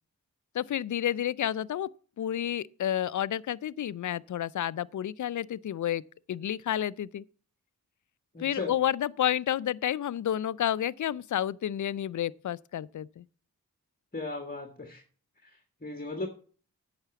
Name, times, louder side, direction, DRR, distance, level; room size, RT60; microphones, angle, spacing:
voice 1, 0.5-1.9 2.2-6.0 6.3-7.2 8.4-13.2, left 11 dB, 55° left, 0.5 m, -30 dB
voice 2, 8.3-8.7 14.1-15.0 15.4-16.3, left 2 dB, 25° left, 1.5 m, -37 dB
8.8 x 5.9 x 7.0 m
cardioid pair, 40°, 36 cm